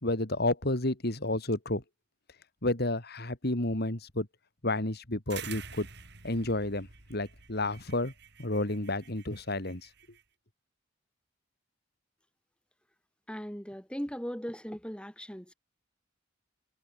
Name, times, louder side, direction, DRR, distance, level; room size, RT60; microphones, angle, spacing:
voice 1, 0.0-1.8 2.6-4.3 4.6-5.9 6.2-8.1 8.4-9.9, left 2 dB, 55° left, 3.0 m, -31 dB
sound 1, 5.3-10.2, right 6 dB, 60° right, 7.8 m, -48 dB
voice 2, 13.3-15.5, equal, 5° left, 5.3 m, -38 dB
head